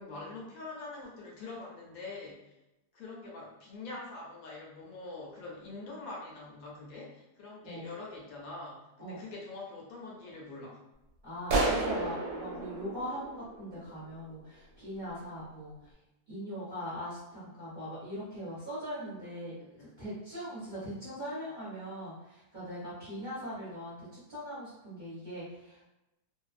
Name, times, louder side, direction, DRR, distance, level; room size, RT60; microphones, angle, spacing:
voice 1, 0.0-2.5 2.9-10.8 19.6-19.9 23.2-23.3, left 3 dB, 70° left, -3 dB, 1.0 m, -44 dB
voice 2, 11.2-15.9 16.3-25.9, equal, 35° right, -10 dB, 0.8 m, -41 dB
sound 1, 11.5-14.1, right 2 dB, 75° right, 1.1 m, -32 dB
2.5 x 2.3 x 2.4 m, 0.94 s
omnidirectional pair, 1.7 m